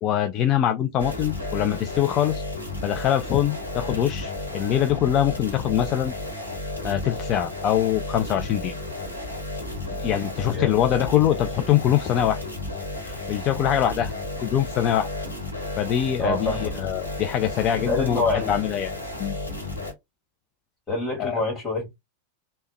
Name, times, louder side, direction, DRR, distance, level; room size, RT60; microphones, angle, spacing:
voice 1, 0.0-2.4 2.8-6.1 6.8-8.7 10.0-12.4 13.0-14.1 14.4-15.1 15.8-18.2 18.5-18.9 19.2-19.4 21.2-21.4, left 11 dB, 35° left, 0.3 m, -23 dB
sound 1, 1.0-19.9, left 2 dB, 85° left, 1.1 m, -33 dB
voice 2, 16.2-16.7 17.8-18.6 20.9-22.0, left 2 dB, 10° left, 1.7 m, -26 dB
3.3 x 2.1 x 3.3 m
figure-of-eight pair, 90°, 0 cm